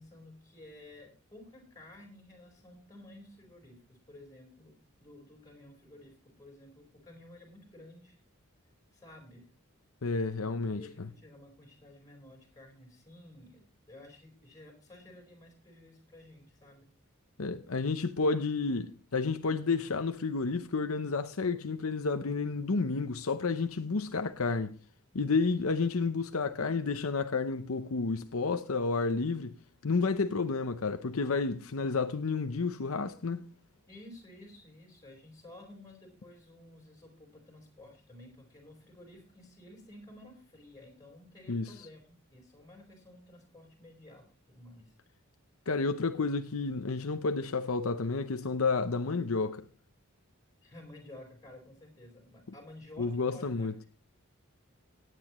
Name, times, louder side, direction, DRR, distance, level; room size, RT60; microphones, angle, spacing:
voice 1, 0.0-4.7 5.0-8.2 8.9-9.5 10.4-16.9 33.9-44.9 50.6-53.7, left 1 dB, 15° left, 4.4 m, -53 dB
voice 2, 10.0-11.1 17.4-24.7 25.1-29.5 29.8-33.5 41.5-41.7 45.7-49.6 53.0-53.7, left 4 dB, 75° left, 0.7 m, -31 dB
17.5 x 9.3 x 3.1 m
head